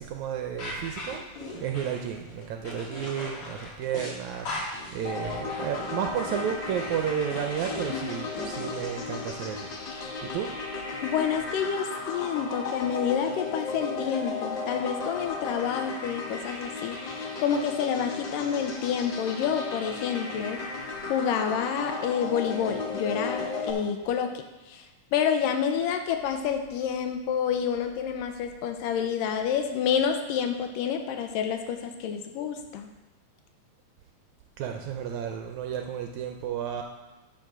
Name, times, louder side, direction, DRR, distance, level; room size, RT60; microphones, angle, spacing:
voice 1, 0.0-9.7 10.0-10.5 34.6-36.8, right 9 dB, 80° right, 4 dB, 1.7 m, -32 dB
sound 1, 0.6-8.8, left 1 dB, 50° left, 2.4 m, -39 dB
sound 2, 5.0-23.7, left 4 dB, 70° left, 1.1 m, -35 dB
voice 2, 11.0-20.6 21.1-24.3 24.7-24.8 25.1-32.9, left 7 dB, 85° left, 6 dB, 2.4 m, -28 dB
10.0 x 4.9 x 6.0 m, 1.1 s
omnidirectional pair, 3.8 m